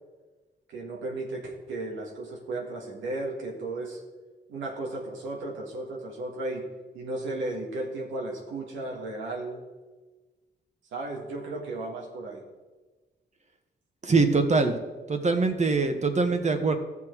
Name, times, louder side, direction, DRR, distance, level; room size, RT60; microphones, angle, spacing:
voice 1, 0.7-4.0 4.5-6.6 6.9-9.6 10.9-12.4, right 2 dB, 90° right, -1 dB, 1.9 m, -34 dB
voice 2, 14.0-14.8 15.1-16.8, right 3 dB, 35° right, 6 dB, 1.5 m, -23 dB
14.0 x 6.1 x 4.7 m, 1.2 s
supercardioid pair, 60°, 19 cm